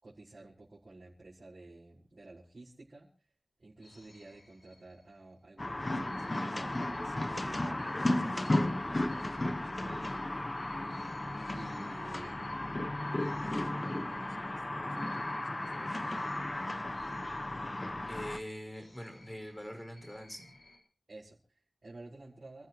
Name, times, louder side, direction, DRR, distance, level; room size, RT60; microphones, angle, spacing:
voice 1, 0.0-3.1 3.6-10.5 11.5-12.7 13.4-16.3 21.1-22.7, right 2 dB, 65° right, -6 dB, 4.9 m, -52 dB
sound 1, 3.8-5.4 6.0-14.6 14.9-20.8, left 2 dB, 85° left, 4.9 m, -61 dB
sound 2, 5.6-18.4, left 1 dB, 35° left, 1.3 m, -34 dB
voice 2, 18.1-20.6, equal, 15° left, 4 dB, 5.3 m, -43 dB
27.0 x 14.0 x 3.1 m, 0.38 s
wide cardioid pair, 65°, 0 cm